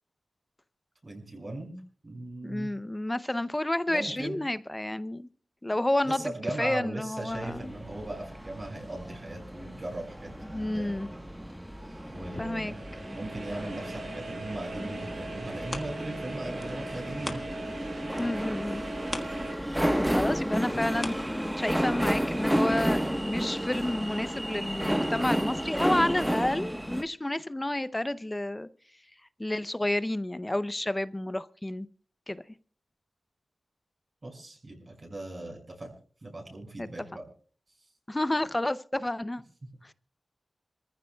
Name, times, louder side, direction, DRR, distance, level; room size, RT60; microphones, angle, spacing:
voice 1, 1.0-2.7 3.9-4.4 6.0-11.3 12.1-12.8 13.1-17.4 34.2-35.9 36.2-37.2, right 2 dB, 45° right, 5.7 m, -39 dB
voice 2, 2.4-5.3 5.6-6.2 6.6-7.7 10.4-11.1 12.4-12.7 18.2-18.8 20.1-28.7 29.4-31.9 32.3-32.4 36.8-36.9 38.1-39.4 39.8-39.9, left 1 dB, 20° left, 0.6 m, -30 dB
sound 1, 7.3-27.0, equal, 10° right, 1.2 m, -32 dB
sound 2, 11.9-19.5, right 2 dB, 85° right, 7.3 m, -41 dB
sound 3, 14.9-17.8 18.1-21.9 22.4-22.5, left 2 dB, 40° left, 1.4 m, -42 dB
27.0 x 14.5 x 2.3 m
cardioid pair, 60°, 0 cm